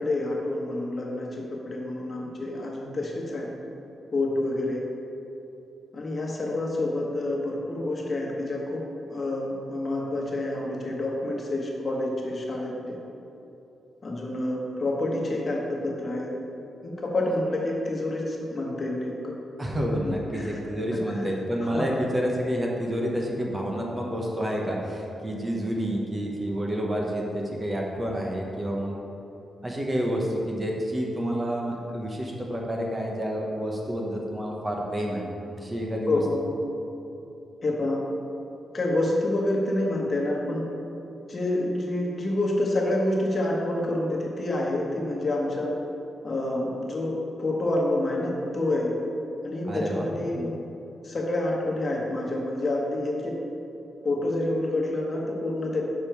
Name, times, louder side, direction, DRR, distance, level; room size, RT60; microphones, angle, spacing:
voice 1, 0.0-3.5 4.1-4.8 5.9-8.8 9.1-13.0 14.0-16.3 16.8-19.3 20.0-20.6 20.9-21.2 21.7-21.8 36.1-36.4 37.6-38.0 38.7-40.7 41.3-45.7 46.2-48.9 49.4-50.6 51.0-53.3 54.0-55.8, left 1 dB, 40° left, -2 dB, 1.3 m, -28 dB
voice 2, 19.6-29.0 29.6-35.3 35.6-36.2 49.7-50.1, equal, 20° right, -1 dB, 1.0 m, -29 dB
6.5 x 5.4 x 4.6 m, 3.0 s
cardioid pair, 95°, 0 cm